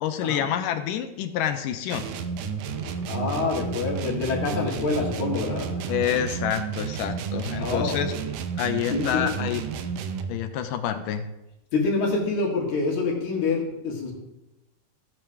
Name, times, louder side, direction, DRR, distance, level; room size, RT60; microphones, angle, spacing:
voice 1, 0.0-2.1 5.9-8.1 8.6-9.6 10.3-11.3, left 10 dB, 80° left, 8 dB, 2.2 m, -27 dB
sound 1, 1.9-10.4, right 6 dB, 75° right, 2.0 m, -31 dB
voice 2, 2.6-6.1 7.6-8.2 8.9-9.5 11.7-14.1, left 3 dB, 60° left, -2 dB, 3.2 m, -27 dB
15.0 x 8.7 x 2.9 m, 0.94 s
omnidirectional pair, 3.9 m